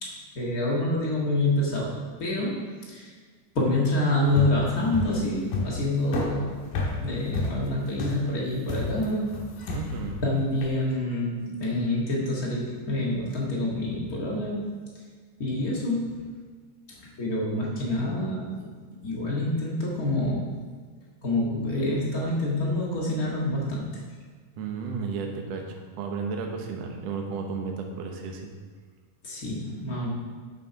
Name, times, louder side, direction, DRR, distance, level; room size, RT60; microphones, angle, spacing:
voice 1, 0.0-1.9 2.2-2.6 2.9-3.1 3.5-6.5 7.0-9.4 10.2-14.7 15.4-16.2 16.9-18.7 19.0-20.5 21.2-23.9 29.2-30.1, left 1 dB, 45° left, -4 dB, 1.1 m, -27 dB
sound 1, 4.2-10.8, left 3 dB, 65° left, 2.6 m, -32 dB
voice 2, 9.7-10.3 24.6-28.5, right 5 dB, 75° right, 2 dB, 1.5 m, -33 dB
9.2 x 6.5 x 5.7 m, 1.6 s
omnidirectional pair, 4.5 m